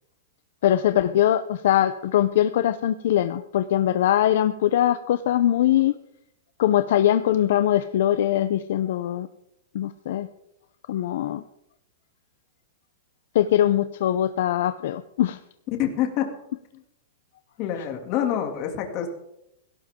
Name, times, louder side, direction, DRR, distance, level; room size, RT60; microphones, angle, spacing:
voice 1, 0.6-6.0 6.6-9.3 9.7-10.3 10.9-11.4 13.3-15.4, left 11 dB, 60° left, 11 dB, 0.7 m, -22 dB
voice 2, 15.8-16.3 16.7-16.8 17.6-19.1, left 10 dB, 35° left, 4 dB, 2.6 m, -26 dB
17.5 x 17.0 x 3.8 m, 0.80 s
supercardioid pair, 165°, 0 cm